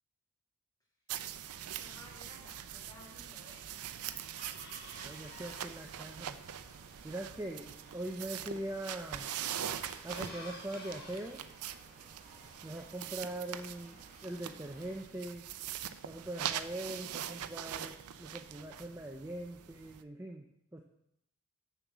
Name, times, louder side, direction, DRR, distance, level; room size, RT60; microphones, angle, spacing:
sound 1, 1.1-20.0, right 10 dB, 90° right, 0.5 m, -43 dB
voice 1, 1.7-3.8, left 1 dB, 15° left, -4 dB, 2.8 m, -56 dB
Chicken rooster, 1.8-18.4, left 2 dB, 40° left, 2.0 m, -58 dB
voice 2, 5.0-6.4 7.0-9.3 10.0-11.4 12.6-15.5 16.1-20.8, right 1 dB, 10° right, 2 dB, 0.5 m, -42 dB
sound 2, 5.4-15.0, right 3 dB, 30° right, 1.4 m, -59 dB
7.1 x 7.0 x 6.0 m, 0.78 s
head